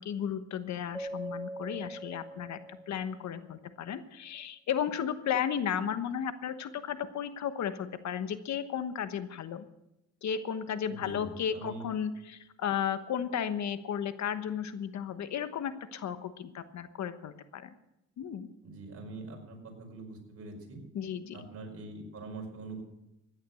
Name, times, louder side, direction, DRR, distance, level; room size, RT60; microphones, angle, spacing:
voice 1, 0.0-9.7 10.2-17.7 18.2-18.5 20.9-21.5, left 8 dB, 65° left, 11 dB, 1.2 m, -34 dB
Keyboard (musical), 0.9-3.4, right 1 dB, 5° left, 3.8 m, -42 dB
voice 2, 10.9-11.9 18.6-20.8 21.3-22.8, right 3 dB, 50° right, 2 dB, 5.2 m, -44 dB
15.5 x 10.5 x 6.9 m, 0.89 s
cardioid pair, 90°, 30 cm